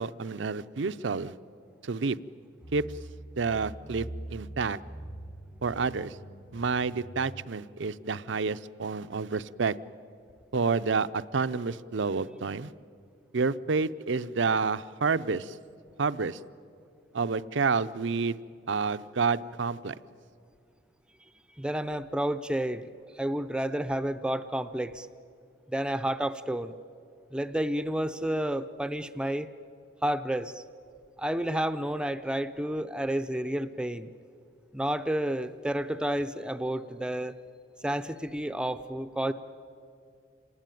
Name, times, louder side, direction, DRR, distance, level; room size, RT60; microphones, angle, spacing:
voice 1, 0.0-1.3 1.8-2.2 2.7-2.8 3.4-4.8 5.6-6.2 6.5-9.8 10.5-12.7 13.3-15.6 16.0-16.4 17.1-18.4 18.7-20.0, right 4 dB, 70° right, 14 dB, 0.6 m, -29 dB
sound 1, 2.6-7.6, right 1 dB, 70° left, 7.5 m, -44 dB
voice 2, 21.6-25.1 25.7-26.7 27.3-29.5 30.0-30.6 31.2-34.1 34.7-37.3 37.8-39.3, right 1 dB, 5° right, 11 dB, 0.5 m, -30 dB
27.5 x 19.5 x 9.2 m, 2.4 s
head